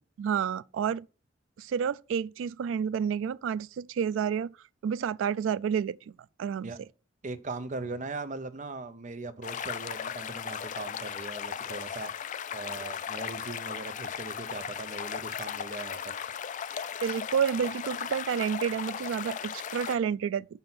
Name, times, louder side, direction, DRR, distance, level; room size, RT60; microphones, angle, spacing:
voice 1, 0.2-1.0 1.6-4.5 4.8-6.1 6.4-6.7 17.0-20.5, right 7 dB, 90° right, 0.3 m, -30 dB
voice 2, 7.2-12.1 12.5-16.0, right 3 dB, 40° right, 0.7 m, -39 dB
sound 1, 9.4-20.0, left 8 dB, 40° left, 0.4 m, -37 dB
5.6 x 5.3 x 6.0 m
head